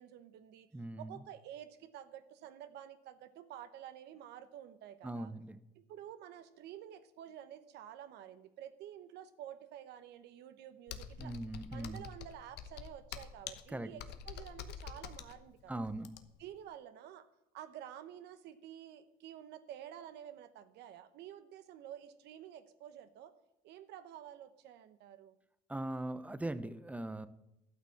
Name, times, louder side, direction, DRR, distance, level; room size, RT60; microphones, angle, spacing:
voice 1, 0.0-0.7 1.0-5.3 5.8-11.3 11.7-15.9 16.4-17.3 17.5-23.3 23.6-25.4, right 10 dB, 80° right, 11 dB, 1.0 m, -50 dB
voice 2, 0.7-1.2 5.0-5.6 11.2-12.1 13.7-13.9 15.7-16.1 25.7-27.3, right 1 dB, 10° right, 13 dB, 0.8 m, -40 dB
Computer keyboard, 10.9-16.5, left 8 dB, 80° left, 1.1 m, -47 dB
12.5 x 6.1 x 8.5 m, 0.88 s
cardioid pair, 110°, 17 cm